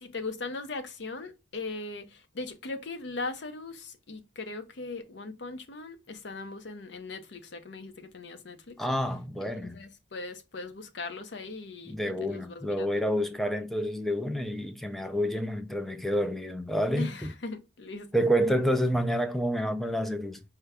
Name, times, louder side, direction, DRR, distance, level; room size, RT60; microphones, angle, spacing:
voice 1, 0.0-8.8 9.6-12.9 17.0-18.1, left 3 dB, 65° left, 0.6 m, -39 dB
voice 2, 8.8-9.8 11.9-17.3 18.1-20.4, equal, ahead, 0.3 m, -28 dB
4.6 x 2.2 x 3.4 m
head